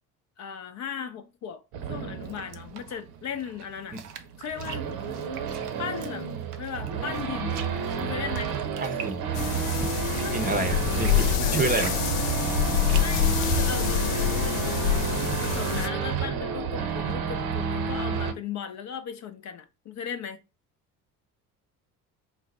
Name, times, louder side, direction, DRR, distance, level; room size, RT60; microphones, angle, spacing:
voice 1, 0.4-1.6 1.9-4.0 4.4-4.9 5.8-6.3 6.6-7.6 8.0-8.6 10.2-10.7 11.4-11.6 13.0-15.0 15.3-20.4, left 7 dB, 40° left, 0.6 m, -37 dB
Race car auto racing / Idling / Accelerating revving vroom, 1.7-18.3, right 6 dB, 50° right, 0.8 m, -31 dB
sound 1, 1.8-13.7, right 7 dB, 85° right, 0.5 m, -45 dB
voice 2, 8.8-9.2 10.3-11.2 11.5-11.9, right 3 dB, 20° right, 0.7 m, -28 dB
sound 2, 9.3-15.9, left 10 dB, 85° left, 0.5 m, -26 dB
4.1 x 2.1 x 4.1 m
figure-of-eight pair, 55°, 45 cm